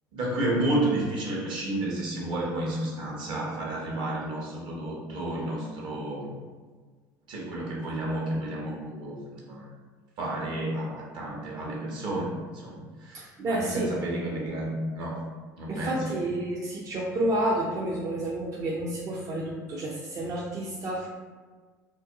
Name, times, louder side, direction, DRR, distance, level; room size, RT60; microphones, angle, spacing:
voice 1, 0.1-6.3 7.3-9.2 9.5-9.7 10.2-15.2 15.6-16.2, right 1 dB, 55° right, -3 dB, 0.8 m, -31 dB
voice 2, 13.1-13.9 15.7-21.1, right 1 dB, 35° right, -4 dB, 0.4 m, -30 dB
2.5 x 2.2 x 2.6 m, 1.5 s
hypercardioid pair, 75°, 9 cm